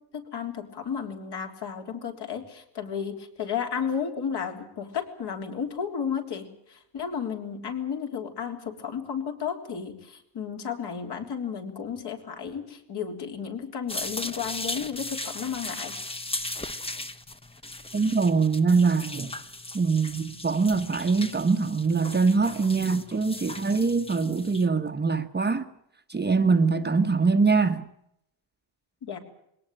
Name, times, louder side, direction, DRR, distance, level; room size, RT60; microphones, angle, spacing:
voice 1, 0.1-15.9 29.0-29.2, left 7 dB, 55° left, 3.5 m, -33 dB
sound 1, 13.9-24.7, left 2 dB, 10° left, 1.1 m, -37 dB
voice 2, 17.9-19.3 19.7-25.7 26.1-27.8, right 4 dB, 20° right, 1.1 m, -23 dB
21.5 x 18.0 x 8.9 m
cardioid pair, 135°, 47 cm